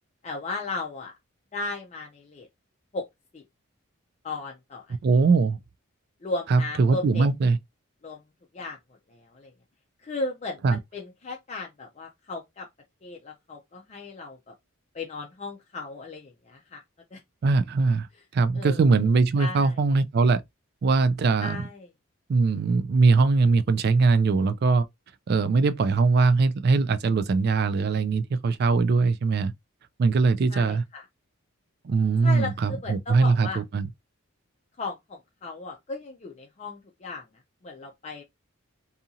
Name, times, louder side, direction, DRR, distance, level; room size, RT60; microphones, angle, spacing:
voice 1, 0.2-1.1 1.5-2.5 2.9-3.0 3.3-3.4 4.2-5.0 6.2-7.3 8.0-8.2 8.5-8.8 9.1-9.5 10.0-12.7 13.0-14.5 14.9-16.8 17.1-17.2 18.6-18.8 19.4-19.7 21.4-21.9 30.5-31.0 32.2-33.6 34.8-37.2 37.6-38.2, left 3 dB, 30° left, 0.4 m, -36 dB
voice 2, 5.0-5.6 6.5-7.6 10.6-10.8 17.4-18.1 18.3-20.4 20.8-21.6 22.3-24.8 25.3-29.5 30.0-30.8 31.8-33.9, right 4 dB, 50° right, 0.3 m, -21 dB
2.7 x 2.5 x 2.7 m
head